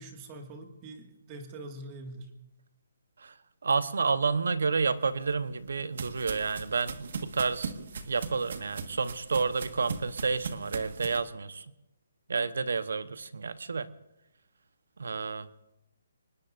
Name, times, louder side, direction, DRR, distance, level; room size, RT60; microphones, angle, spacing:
voice 1, 0.0-2.3, right 2 dB, 25° right, 4 dB, 2.0 m, -44 dB
voice 2, 3.6-7.7 8.1-11.6 12.3-13.9 15.0-15.5, right 4 dB, 80° right, 13 dB, 1.0 m, -30 dB
sound 1, 5.1-11.2, right 5 dB, 60° right, 1.6 m, -39 dB
25.5 x 20.0 x 2.6 m, 0.93 s
hypercardioid pair, 160°, 0 cm